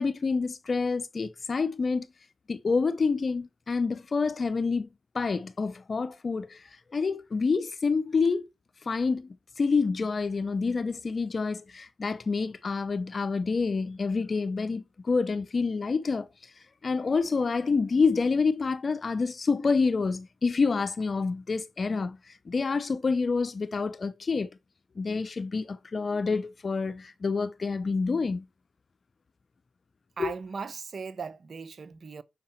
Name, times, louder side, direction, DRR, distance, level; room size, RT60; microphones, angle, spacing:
voice 1, 0.0-2.1 2.5-4.9 5.1-8.5 8.8-9.3 9.6-16.5 16.8-24.5 25.0-28.5 30.2-30.3, left 4 dB, 50° left, 0.7 m, -28 dB
voice 2, 30.2-32.2, right 5 dB, 60° right, 0.8 m, -38 dB
6.5 x 5.4 x 5.7 m
cardioid pair, 50°, 0 cm